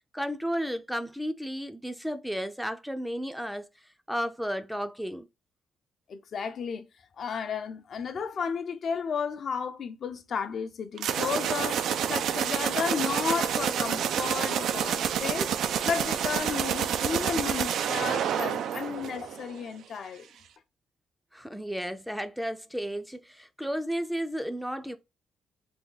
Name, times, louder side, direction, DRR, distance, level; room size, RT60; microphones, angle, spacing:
voice 1, 0.1-3.7 4.1-5.3 21.3-25.0, equal, ahead, 0.5 m, -33 dB
voice 2, 6.1-6.9 7.2-11.8 12.1-15.5 15.8-20.3, left 6 dB, 55° left, 0.6 m, -33 dB
sound 1, 11.0-19.6, right 9 dB, 75° right, 0.4 m, -28 dB
3.5 x 2.2 x 3.9 m
cardioid pair, 90°, 0 cm